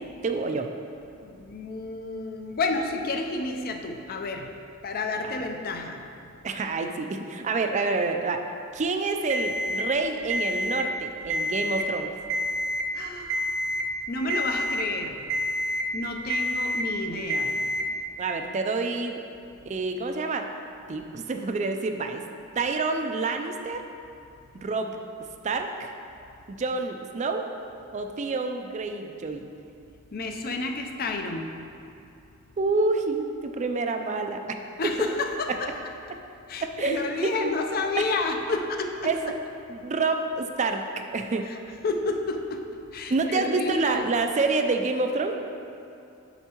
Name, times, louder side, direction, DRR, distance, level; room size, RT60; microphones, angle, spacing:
voice 1, 0.2-0.7 5.2-5.4 6.4-8.4 8.7-12.1 18.2-19.2 19.6-20.5 20.9-22.2 22.6-23.8 24.5-25.0 25.4-25.9 26.5-27.5 27.9-29.5 32.6-34.9 36.6-37.3 38.0-38.1 39.0-39.3 39.7-41.5 43.1-45.4, right 3 dB, 35° right, 5 dB, 0.4 m, -28 dB
voice 2, 1.2-4.5 4.8-6.0 12.9-13.4 14.1-15.2 15.9-17.6 30.1-31.5 34.8-35.7 36.5-39.1 41.4-41.5 41.8-42.6 42.9-44.1, left 3 dB, 45° left, 4 dB, 0.5 m, -30 dB
Alarm, 9.3-9.8 10.3-10.8 11.2-11.8 12.3-12.8 13.3-13.8 14.3-14.8 15.3-15.8 16.3-16.8 17.3-17.8, equal, 85° right, 0.6 m, -28 dB
8.0 x 6.3 x 3.0 m, 2.6 s
head